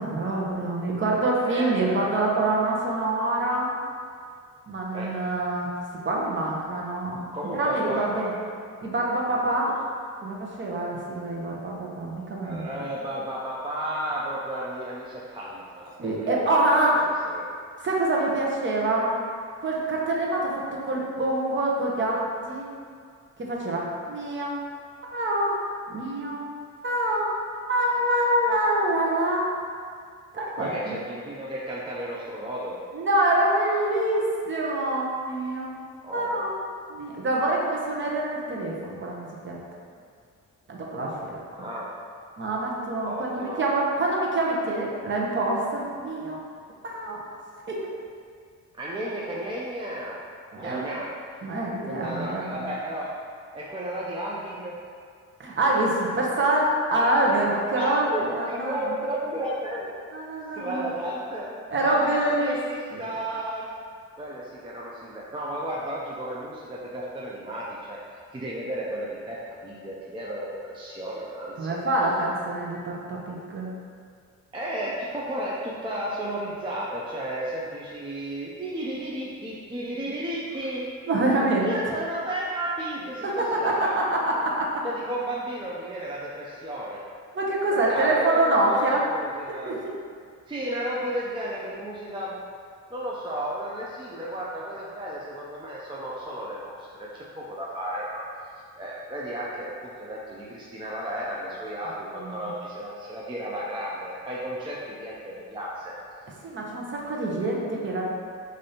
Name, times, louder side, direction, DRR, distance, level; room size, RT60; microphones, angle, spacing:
voice 1, 0.0-3.7 4.7-5.7 6.0-7.3 7.6-8.3 8.8-9.7 10.2-12.8 16.0-17.1 17.8-19.1 19.6-22.2 22.5-22.7 23.4-24.6 25.1-25.6 25.9-26.4 26.8-27.3 27.7-29.5 30.3-31.0 32.9-35.7 36.1-36.6 36.9-39.6 40.7-41.4 42.4-46.4 46.8-47.2 47.7-47.9 50.5-50.9 51.4-52.7 55.4-59.0 60.1-60.9 61.7-62.6 62.9-63.1 71.6-73.7 81.1-81.7 83.2-84.8 87.3-89.1 89.7-89.9 102.2-102.5 106.4-108.0, right 1 dB, 35° right, -3 dB, 0.8 m, -25 dB
voice 2, 1.5-2.0 4.9-5.1 7.2-8.3 9.7-9.8 12.4-16.8 17.3-17.5 20.2-20.3 30.6-32.8 36.0-36.4 41.5-41.9 43.0-43.6 48.7-50.2 50.6-51.1 52.0-53.2 53.5-54.7 57.0-57.1 57.7-59.9 60.5-63.7 64.2-71.8 74.5-80.9 81.6-84.0 84.8-87.0 87.7-89.7 90.5-92.3 92.9-98.2 98.8-105.9, right 1 dB, 15° right, -5 dB, 0.4 m, -33 dB
6.5 x 2.6 x 2.8 m, 2.1 s
cardioid pair, 135°, 32 cm